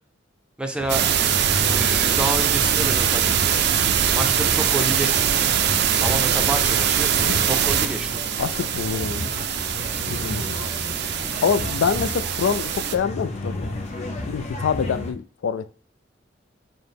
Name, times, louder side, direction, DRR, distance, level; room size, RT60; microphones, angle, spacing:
voice 1, 0.6-1.0 1.6-3.2 4.1-5.4 6.0-7.1 7.4-8.2, right 1 dB, 5° right, 0.5 m, -29 dB
sound 1, 0.8-15.1, left 1 dB, 40° left, 0.6 m, -33 dB
sound 2, 0.9-13.0, right 9 dB, 65° right, 0.4 m, -22 dB
voice 2, 8.4-9.5 10.1-10.6 11.4-13.8 14.3-15.7, left 6 dB, 90° left, 0.3 m, -26 dB
5.8 x 2.1 x 3.4 m
head